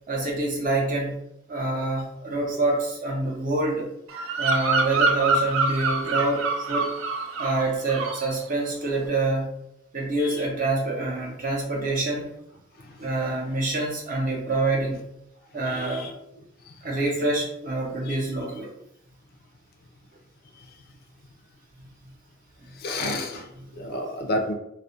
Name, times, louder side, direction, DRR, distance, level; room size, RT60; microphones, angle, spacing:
voice 1, 0.1-1.2 1.5-3.9 4.4-6.9 7.4-9.5 9.9-12.3 13.0-15.0 15.5-16.1 16.8-18.7, right 2 dB, 45° right, -2 dB, 0.6 m, -26 dB
Bird vocalization bird call bird song, 4.1-7.6 7.9-8.3, right 3 dB, 85° right, 0.3 m, -25 dB
voice 2, 12.8-13.1 15.7-16.2 16.6-16.8 18.0-18.2 20.5-20.7 22.7-24.5, left 1 dB, 50° left, 4 dB, 0.3 m, -32 dB
2.3 x 2.0 x 2.6 m, 0.79 s
head